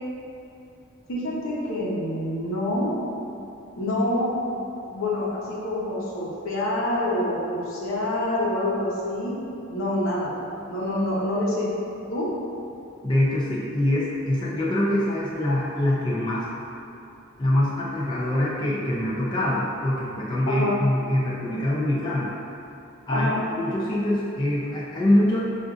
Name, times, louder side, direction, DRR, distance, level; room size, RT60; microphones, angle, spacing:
voice 1, 1.1-2.9 3.8-4.3 4.8-9.4 9.7-10.3 10.7-11.7 12.1-12.3 20.5-20.8 23.1-23.4, left 1 dB, 85° left, -6 dB, 0.8 m, -26 dB
voice 2, 13.0-16.5 17.4-22.3 23.1-25.4, left 1 dB, 20° left, -7 dB, 0.4 m, -24 dB
5.9 x 2.5 x 2.5 m, 2.8 s
head